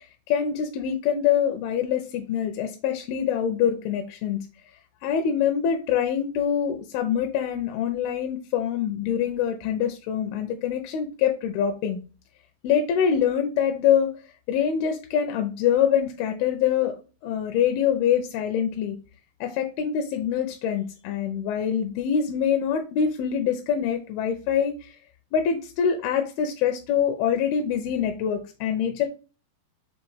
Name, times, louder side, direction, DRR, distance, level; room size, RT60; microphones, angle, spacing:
voice 1, 0.0-4.4 5.0-12.0 12.6-14.1 14.5-17.0 17.2-19.0 19.4-25.0 25.3-29.1, left 8 dB, 80° left, 5 dB, 2.3 m, -25 dB
6.3 x 2.5 x 3.1 m, 0.33 s
omnidirectional pair, 4.7 m